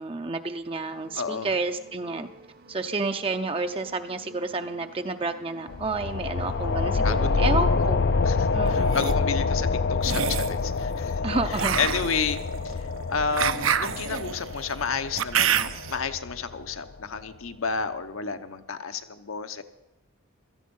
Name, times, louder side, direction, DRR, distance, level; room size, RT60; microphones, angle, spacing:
voice 1, 0.0-2.3 2.7-8.0 8.5-9.0 11.2-11.8, right 3 dB, 25° right, 7 dB, 0.6 m, -30 dB
sound 1, 0.8-8.9, right 1 dB, 45° right, 0.9 m, -51 dB
voice 2, 1.1-1.5 7.0-7.8 8.2-11.2 11.7-12.4 12.6-12.8 13.1-19.6, left 5 dB, 75° left, 9 dB, 1.1 m, -31 dB
sound 2, 5.7-16.9, left 4 dB, 50° left, 0.5 m, -27 dB
sound 3, 8.7-9.1 10.0-10.6 11.5-16.0, right 8 dB, 75° right, 0.7 m, -27 dB
17.0 x 13.5 x 5.5 m, 1.0 s
head